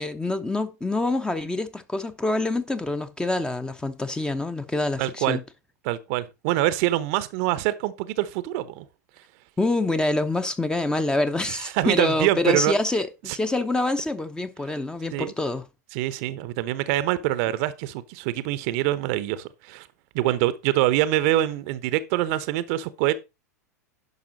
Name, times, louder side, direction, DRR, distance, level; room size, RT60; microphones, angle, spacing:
voice 1, 0.0-5.4 9.6-15.6, left 2 dB, 10° left, 0.9 m, -26 dB
voice 2, 5.0-5.4 5.8-8.9 11.5-12.7 13.3-13.4 15.1-15.3 15.9-19.9 20.1-23.1, right 15 dB, 50° right, 0.8 m, -25 dB
10.5 x 5.7 x 4.0 m
hypercardioid pair, 95°, 9 cm